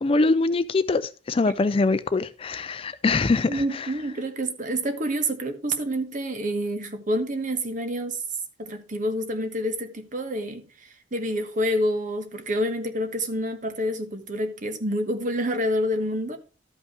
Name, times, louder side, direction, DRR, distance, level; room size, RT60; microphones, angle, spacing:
voice 1, 0.0-3.9, left 3 dB, 30° left, 0.4 m, -23 dB
voice 2, 3.5-8.2 8.6-16.4, equal, 40° right, 1.2 m, -28 dB
12.5 x 5.5 x 4.7 m
head